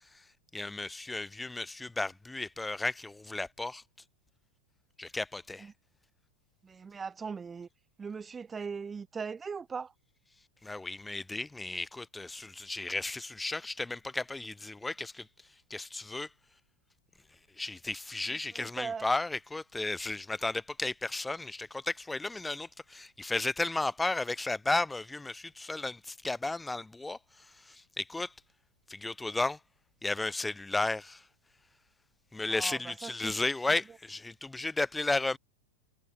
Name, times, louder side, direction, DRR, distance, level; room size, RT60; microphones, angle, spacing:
voice 1, 0.5-3.8 5.0-5.7 10.6-15.3 15.7-16.3 17.6-27.2 27.7-28.3 28.9-29.6 30.0-31.2 32.3-35.4, left 2 dB, 10° left, 1.2 m, -34 dB
voice 2, 6.6-7.7 8.0-9.9 18.5-19.1 32.5-33.3, right 5 dB, 15° right, 3.8 m, -39 dB
figure-of-eight pair, 90°, 0 cm